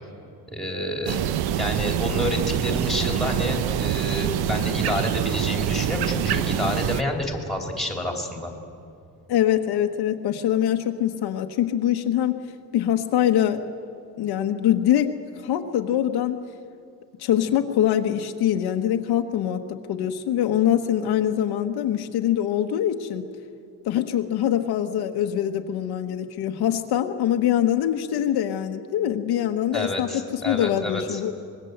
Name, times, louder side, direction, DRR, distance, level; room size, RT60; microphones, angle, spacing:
voice 1, 0.5-1.2 1.6-8.5 29.7-31.2, left 1 dB, ahead, 2 dB, 2.9 m, -29 dB
sound 1, 1.1-7.0, right 10 dB, 60° right, 0.9 m, -25 dB
voice 2, 9.3-12.4 12.7-13.6 14.2-15.1 15.4-16.4 17.2-23.3 23.8-31.3, left 11 dB, 65° left, 5 dB, 1.2 m, -23 dB
25.0 x 21.5 x 7.9 m, 2.5 s
cardioid pair, 175°, 41 cm